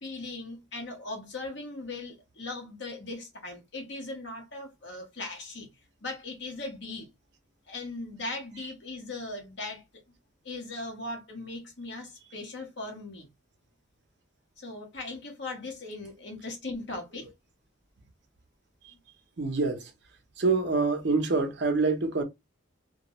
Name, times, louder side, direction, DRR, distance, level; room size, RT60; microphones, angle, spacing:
voice 1, 0.0-5.7 6.0-7.1 7.7-9.8 10.4-13.3 14.6-17.3, left 2 dB, 60° left, 0.9 m, -39 dB
voice 2, 19.4-19.9 20.4-22.2, right 3 dB, 55° right, 0.6 m, -26 dB
2.2 x 2.1 x 2.9 m
head